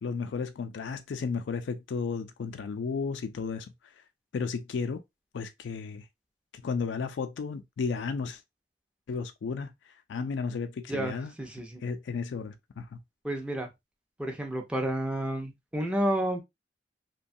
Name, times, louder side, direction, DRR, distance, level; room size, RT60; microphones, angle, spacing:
voice 1, 0.0-3.7 4.3-5.0 5.3-6.0 6.5-8.4 9.1-9.7 10.1-11.3 11.8-13.0, left 5 dB, 90° left, 0.4 m, -33 dB
voice 2, 10.9-11.8 13.2-13.7 14.2-16.4, right 1 dB, 5° right, 0.5 m, -30 dB
3.0 x 2.2 x 2.6 m
head